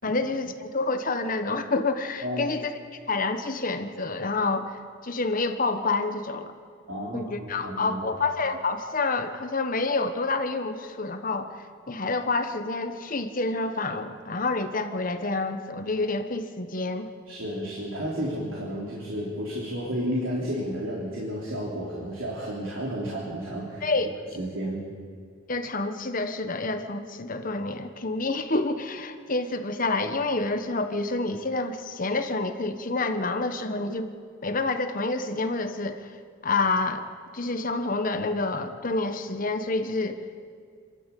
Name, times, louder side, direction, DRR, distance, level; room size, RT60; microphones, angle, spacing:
voice 1, 0.0-2.7 3.1-6.5 7.1-11.5 11.9-17.1 23.8-24.1 25.5-34.1 34.4-36.0 36.4-37.1 37.3-40.2, left 3 dB, 45° left, 8 dB, 1.3 m, -28 dB
voice 2, 2.2-2.5 6.9-8.0 17.3-23.9 24.4-24.8, equal, 80° right, -4 dB, 3.6 m, -32 dB
27.5 x 13.0 x 8.4 m, 2.1 s
head